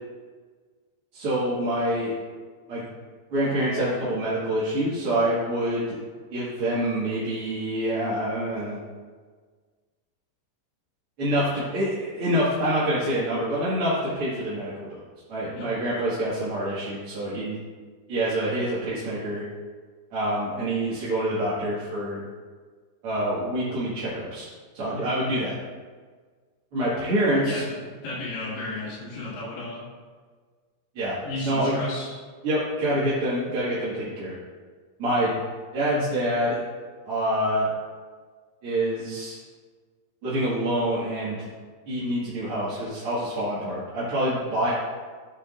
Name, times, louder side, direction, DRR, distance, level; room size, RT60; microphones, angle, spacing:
voice 1, 1.1-2.1 2.7-2.9 3.3-6.0 6.3-8.8 11.2-15.0 15.3-17.6 18.1-19.4 20.1-22.2 23.0-24.5 24.7-25.5 26.7-27.6 31.0-31.2 31.4-31.8 32.4-34.4 35.0-35.4 35.7-36.6 37.1-37.7 38.6-39.4 40.2-41.5 41.9-44.7, right 1 dB, 45° right, -10 dB, 2.0 m, -26 dB
voice 2, 27.4-27.8 28.0-29.8 31.2-32.1, left 2 dB, 90° left, -11 dB, 4.5 m, -33 dB
13.5 x 8.3 x 2.5 m, 1.5 s
omnidirectional pair, 4.6 m